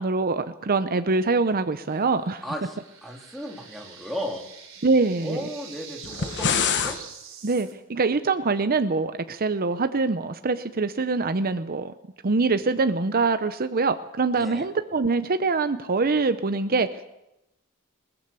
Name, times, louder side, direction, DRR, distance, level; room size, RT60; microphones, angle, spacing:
voice 1, 0.0-2.4 4.8-5.4 7.4-11.9 12.2-17.1, right 3 dB, 45° right, 10 dB, 0.7 m, -24 dB
sound 1, 1.9-7.7, right 6 dB, 65° right, 4.4 m, -44 dB
voice 2, 2.4-4.5 5.2-7.0 14.4-14.7, equal, ahead, 1 dB, 2.8 m, -35 dB
sound 2, 6.0-7.0, left 7 dB, 55° left, 1.3 m, -25 dB
21.0 x 19.5 x 6.9 m, 0.90 s
head